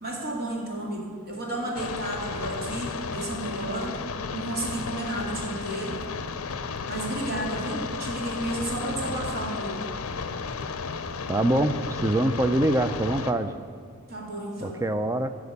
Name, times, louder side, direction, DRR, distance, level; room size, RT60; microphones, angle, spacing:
voice 1, 0.0-4.0 4.3-6.0 6.9-9.9 14.1-14.8, right 1 dB, 45° right, -2 dB, 2.3 m, -32 dB
sound 1, 1.8-13.3, left 4 dB, 75° left, 0.6 m, -33 dB
voice 2, 11.3-13.6 14.6-15.3, right 1 dB, 15° right, 10 dB, 0.4 m, -24 dB
13.5 x 5.0 x 8.1 m, 2.1 s
head